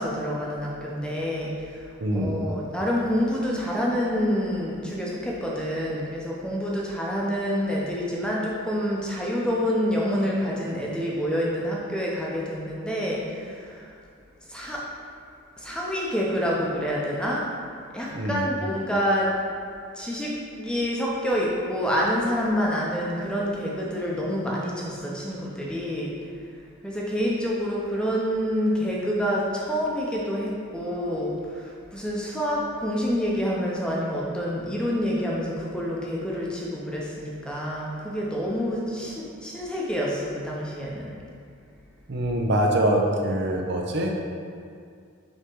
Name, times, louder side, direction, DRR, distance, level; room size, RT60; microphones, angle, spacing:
voice 1, 0.0-14.0 14.5-14.9 15.6-17.5 17.9-19.4 19.9-26.1 26.8-41.1, equal, 5° left, -4 dB, 0.7 m, -27 dB
voice 2, 2.0-2.5 18.1-18.4 42.1-44.2, right 1 dB, 55° right, 1 dB, 0.6 m, -24 dB
6.5 x 3.6 x 4.6 m, 2.3 s
head